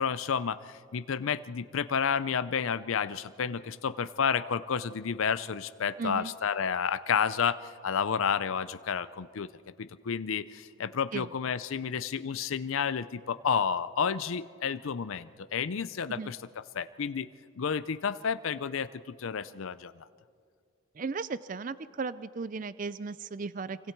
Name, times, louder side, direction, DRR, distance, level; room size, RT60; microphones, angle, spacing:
voice 1, 0.0-9.5 9.8-16.4 16.7-17.3 17.6-18.9 19.2-19.9, left 6 dB, 70° left, 13 dB, 0.5 m, -30 dB
voice 2, 6.0-6.3 11.1-11.3 16.1-16.4 21.0-23.8, right 4 dB, 40° right, 16 dB, 0.4 m, -36 dB
26.5 x 24.5 x 4.5 m, 2.2 s
head